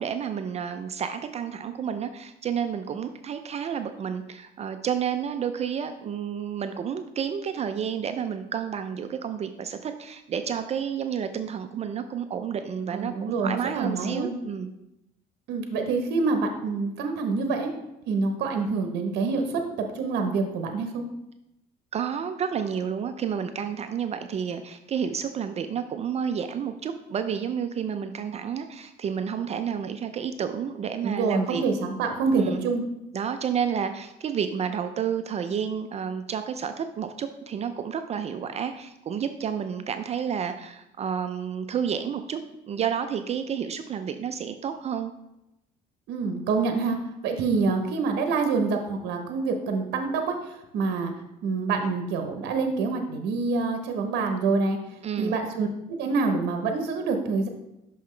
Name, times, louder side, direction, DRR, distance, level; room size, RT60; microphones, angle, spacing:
voice 1, 0.0-14.7 21.9-31.6 32.3-32.6 33.1-42.4 42.7-45.1 55.0-55.4, right 7 dB, 40° right, 8 dB, 0.4 m, -30 dB
voice 2, 12.9-14.3 15.5-17.7 18.1-19.6 19.9-21.1 31.0-32.8 46.1-47.0 47.2-51.1 51.4-54.8 55.2-57.5, right 4 dB, 80° right, 5 dB, 0.8 m, -26 dB
5.9 x 5.7 x 3.2 m, 0.88 s
cardioid pair, 110°, 17 cm